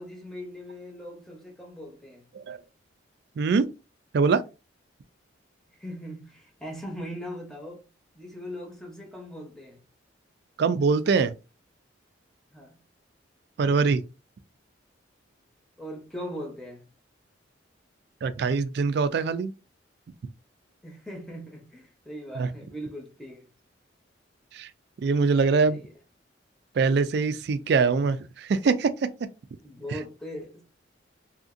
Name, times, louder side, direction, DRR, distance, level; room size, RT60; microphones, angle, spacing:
voice 1, 0.0-2.2 5.7-7.9 8.1-9.8 12.5-12.8 15.8-16.9 20.8-23.5 25.7-25.9 29.6-30.6, equal, 5° left, 0.7 m, -40 dB
voice 2, 3.4-3.7 4.1-4.4 10.6-11.3 13.6-14.0 18.2-19.5 22.4-22.5 24.5-24.7 25.0-25.8 26.7-29.1 29.9-30.0, right 4 dB, 55° right, 0.3 m, -23 dB
2.8 x 2.5 x 2.5 m
head